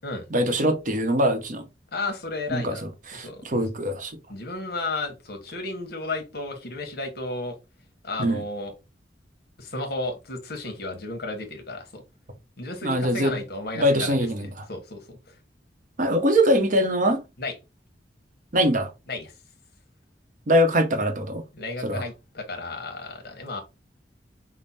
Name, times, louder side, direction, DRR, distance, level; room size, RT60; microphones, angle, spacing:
voice 1, 0.3-1.6 2.5-2.7 3.1-4.1 8.2-8.4 12.8-13.4 13.7-14.6 16.0-17.2 18.5-18.9 20.5-21.4 21.8-22.0, equal, 45° right, 0.9 m, -22 dB
voice 2, 1.9-2.8 3.1-3.7 4.3-7.6 8.0-8.7 9.6-12.0 12.6-15.2 17.4-17.5 19.1-19.3 21.5-23.6, left 2 dB, 60° left, 1.2 m, -33 dB
5.3 x 2.1 x 4.1 m
head